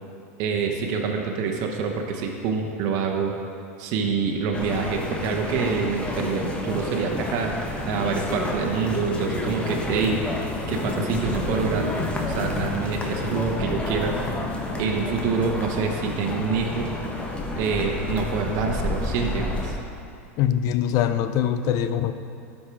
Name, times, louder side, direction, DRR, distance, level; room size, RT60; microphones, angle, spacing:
voice 1, 0.4-3.4 3.8-7.5 7.8-10.2 10.7-11.9 12.3-14.1 14.8-16.9 17.6-19.8, right 5 dB, 55° right, 2 dB, 1.0 m, -26 dB
sound 1, 4.5-19.7, left 2 dB, 15° left, 1.1 m, -29 dB
voice 2, 20.4-22.1, left 10 dB, 50° left, 10 dB, 0.5 m, -23 dB
12.5 x 5.4 x 3.5 m, 2.5 s
hypercardioid pair, 100°, 8 cm